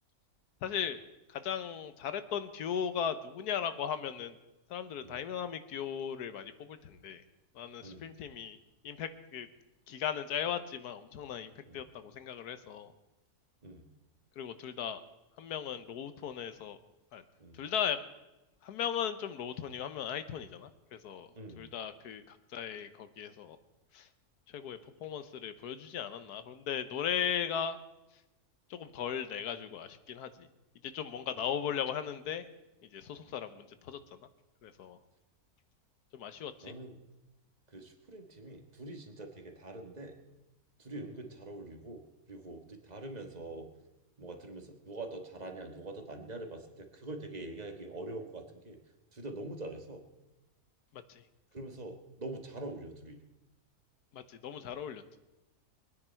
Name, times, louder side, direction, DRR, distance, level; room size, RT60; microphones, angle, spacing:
voice 1, 0.6-1.0 1.3-4.4 4.7-7.2 7.5-8.6 8.8-9.5 9.9-12.9 14.4-15.0 15.4-16.8 17.1-17.2 17.5-18.0 18.6-21.3 21.6-23.6 23.9-24.1 24.5-27.8 28.7-30.5 30.8-32.4 32.8-34.2 34.6-35.0 36.1-36.7 50.9-51.2 54.1-55.0, left 8 dB, 90° left, 11 dB, 1.4 m, -37 dB
voice 2, 21.3-21.7 31.4-31.5 36.6-37.0 37.7-40.1 40.8-43.7 44.2-48.8 49.1-50.0 51.5-53.2, right 2 dB, 30° right, 4 dB, 1.5 m, -44 dB
23.0 x 9.8 x 4.5 m, 0.99 s
omnidirectional pair, 1.6 m